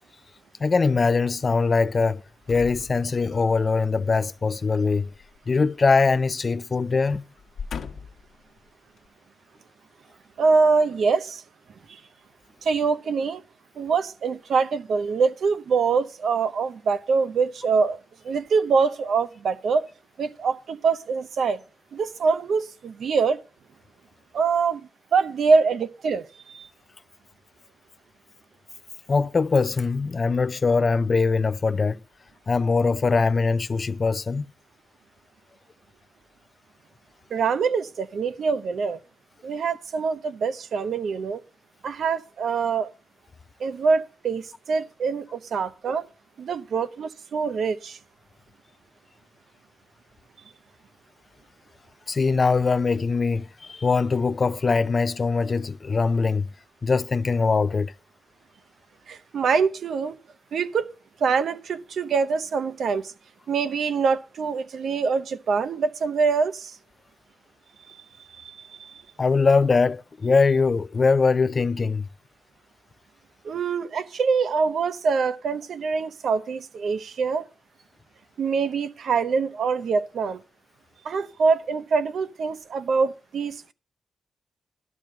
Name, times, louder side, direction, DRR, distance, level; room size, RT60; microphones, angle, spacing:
voice 1, 0.6-2.2 2.5-5.1 5.5-7.2 29.1-32.0 32.5-34.5 52.1-56.5 56.8-57.9 69.2-72.1, left 4 dB, 45° left, 0.4 m, -22 dB
sound 1, 2.4-3.6 5.1-6.3 6.6-6.8 7.4-8.3 9.0-9.1, left 6 dB, 80° left, 1.3 m, -39 dB
voice 2, 10.4-11.4 11.9-12.0 12.6-13.4 13.8-18.0 18.2-19.9 20.2-21.6 21.9-23.4 24.3-26.7 37.3-39.0 39.4-41.4 41.8-42.9 43.6-46.1 46.4-48.0 59.1-60.2 60.5-60.8 61.2-63.1 63.5-66.8 67.9-69.0 73.4-77.5 78.4-80.4 81.0-83.7, right 5 dB, 80° right, 0.8 m, -24 dB
12.0 x 5.9 x 6.4 m
cardioid pair, 85°, 0 cm